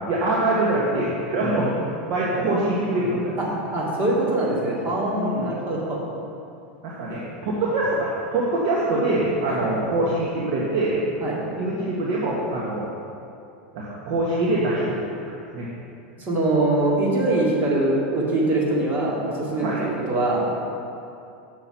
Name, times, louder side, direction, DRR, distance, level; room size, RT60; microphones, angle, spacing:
voice 1, 0.0-1.8 2.1-3.3 5.2-5.5 6.8-11.0 11.6-12.9 13.7-15.1 15.5-15.7 19.5-19.8, right 2 dB, 60° right, -5 dB, 1.3 m, -24 dB
voice 2, 3.7-6.0 7.1-7.2 9.5-9.8 11.2-11.4 16.2-20.5, right 2 dB, 35° right, -4 dB, 2.0 m, -23 dB
6.9 x 5.9 x 5.6 m, 2.6 s
supercardioid pair, 130°, 6 cm